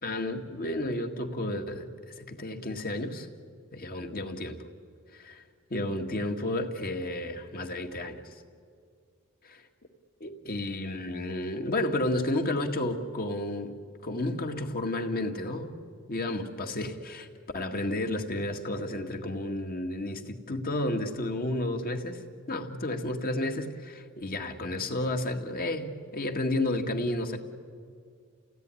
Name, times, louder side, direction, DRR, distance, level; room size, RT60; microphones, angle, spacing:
voice 1, 0.0-1.9 2.3-3.3 3.7-4.6 5.1-5.4 5.7-8.2 10.2-13.7 14.0-15.8 16.1-17.3 17.5-27.4, left 1 dB, 40° left, 5 dB, 2.0 m, -31 dB
30.0 x 17.5 x 9.8 m, 2.2 s
head